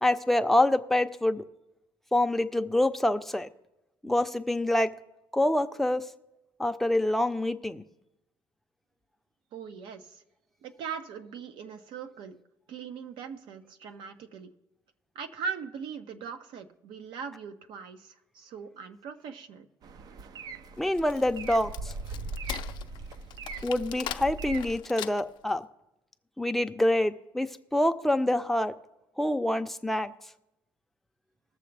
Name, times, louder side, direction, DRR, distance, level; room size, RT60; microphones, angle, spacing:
voice 1, 0.0-1.4 2.1-3.5 4.0-4.9 5.3-6.0 6.6-7.8 20.8-21.9 23.6-25.6 26.4-28.7 29.2-30.1, left 1 dB, 5° left, 7 dB, 0.5 m, -26 dB
voice 2, 9.5-10.2 10.6-12.4 12.7-14.5 15.1-19.7, right 6 dB, 80° right, 8 dB, 1.0 m, -40 dB
sound 1, 19.8-24.8, right 4 dB, 50° right, 0.5 m, -40 dB
Wood, 20.8-25.5, left 12 dB, 65° left, 0.4 m, -40 dB
20.5 x 7.0 x 3.4 m, 0.92 s
cardioid pair, 115°, 8 cm